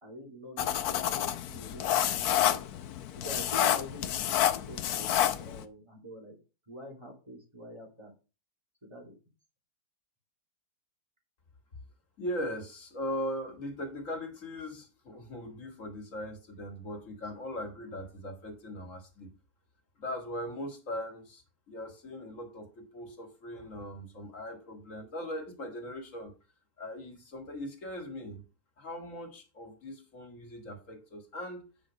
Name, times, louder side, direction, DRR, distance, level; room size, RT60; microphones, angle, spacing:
voice 1, 0.0-2.6 3.2-6.4 6.7-8.1 8.8-9.1, left 1 dB, 20° right, 0 dB, 2.8 m, -46 dB
sound 1, 0.6-5.6, left 11 dB, 85° left, 1.2 m, -29 dB
voice 2, 12.2-19.3 20.0-26.3 26.8-28.4 28.8-31.6, equal, 55° left, 4 dB, 2.4 m, -39 dB
8.9 x 5.1 x 5.1 m, 0.31 s
omnidirectional pair, 1.6 m